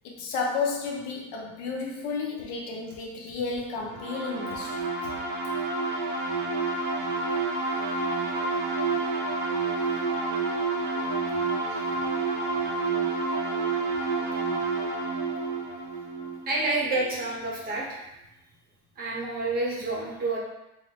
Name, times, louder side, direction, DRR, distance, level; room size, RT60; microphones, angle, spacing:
voice 1, 0.0-4.9 11.7-11.8, left 4 dB, 60° left, -1 dB, 0.8 m, -32 dB
sound 1, 3.9-17.4, right 3 dB, 85° right, 1.3 m, -29 dB
voice 2, 16.5-18.1 19.0-20.4, right 2 dB, 30° right, -4 dB, 0.8 m, -29 dB
3.4 x 2.1 x 4.3 m, 0.91 s
cardioid pair, 175°, 32 cm